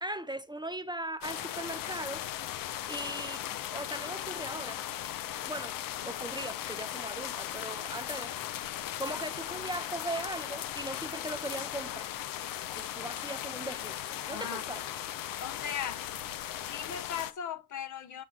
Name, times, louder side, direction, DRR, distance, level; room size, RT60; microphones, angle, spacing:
voice 1, 0.0-2.2 2.9-3.4 3.7-4.8 5.5-5.8 6.0-8.3 9.0-12.1 12.7-14.8, right 1 dB, 15° right, 0.6 m, -39 dB
sound 1, 1.2-17.3, left 12 dB, 75° left, 0.6 m, -38 dB
voice 2, 14.3-14.7 15.4-16.1 16.7-18.2, left 8 dB, 60° left, 1.0 m, -38 dB
7.2 x 6.6 x 2.3 m
supercardioid pair, 55°, 34 cm